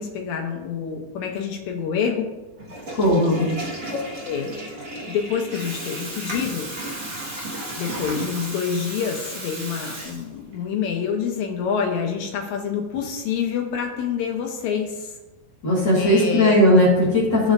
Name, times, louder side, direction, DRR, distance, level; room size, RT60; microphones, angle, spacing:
voice 1, 0.0-2.3 4.2-6.7 7.8-15.1 16.0-16.6, left 7 dB, 80° left, 2 dB, 1.7 m, -27 dB
Water tap faucet / Toilet flush, 2.6-10.6, right 1 dB, 85° right, 0.7 m, -34 dB
voice 2, 2.9-3.5 15.6-17.5, left 1 dB, 45° left, -7 dB, 1.6 m, -17 dB
13.0 x 5.2 x 2.5 m, 1.1 s
omnidirectional pair, 4.1 m